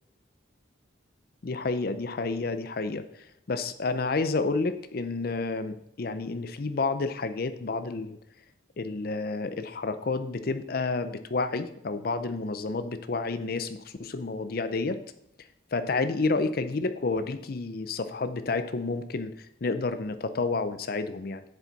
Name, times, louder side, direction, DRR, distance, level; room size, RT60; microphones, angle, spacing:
voice 1, 1.4-3.0 3.5-8.2 8.8-15.0 15.7-19.3 19.6-21.4, left 3 dB, 50° left, 11 dB, 0.5 m, -30 dB
7.8 x 7.3 x 4.0 m, 0.74 s
head